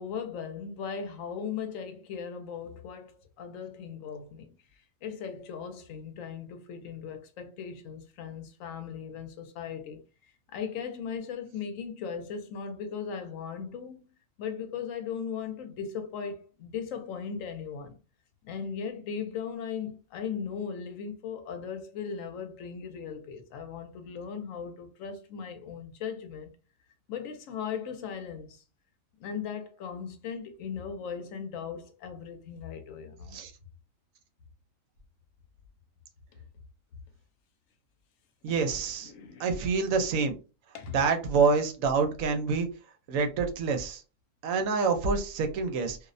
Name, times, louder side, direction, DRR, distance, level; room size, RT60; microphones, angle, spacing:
voice 1, 0.0-4.5 5.0-10.0 10.5-14.1 14.4-18.0 18.4-26.5 27.1-28.6 29.2-33.4 38.4-39.5 40.7-40.9, left 6 dB, 80° left, 1.0 m, -38 dB
voice 2, 38.4-39.1 39.4-40.4 40.9-42.7 43.1-44.0 44.4-46.0, right 4 dB, 90° right, 1.0 m, -27 dB
2.5 x 2.0 x 2.4 m
omnidirectional pair, 1.4 m